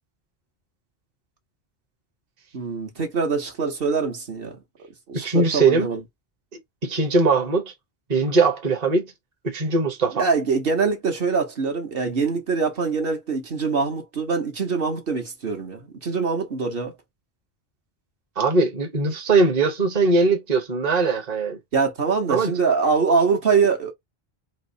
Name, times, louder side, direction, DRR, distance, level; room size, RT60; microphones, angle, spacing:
voice 1, 2.5-4.6 5.1-6.0 10.1-16.9 21.7-23.9, right 5 dB, 65° right, 1.2 m, -23 dB
voice 2, 5.2-5.9 6.8-7.7 8.1-9.1 9.4-10.3 18.4-21.6 22.3-22.5, right 3 dB, 40° right, 1.0 m, -20 dB
4.3 x 2.0 x 2.6 m
omnidirectional pair, 1.1 m